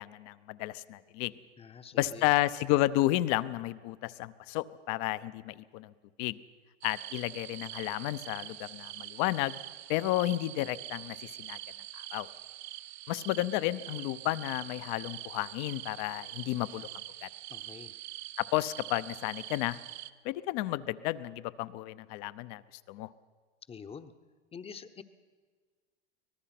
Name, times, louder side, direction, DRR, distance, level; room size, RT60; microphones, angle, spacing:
voice 1, 0.0-1.3 1.9-5.9 6.2-6.4 6.8-9.6 9.9-11.6 11.9-12.3 13.1-16.9 17.2-17.3 18.4-19.8 20.2-22.6 22.9-23.1, left 16 dB, 50° left, 15 dB, 0.8 m, -32 dB
voice 2, 1.6-2.3 17.5-17.9 23.7-24.1 24.5-25.0, left 6 dB, 15° left, 10 dB, 0.9 m, -46 dB
sound 1, 6.8-20.1, right 14 dB, 65° right, 0.9 m, -44 dB
24.5 x 18.5 x 5.9 m, 1.5 s
hypercardioid pair, 115°, 34 cm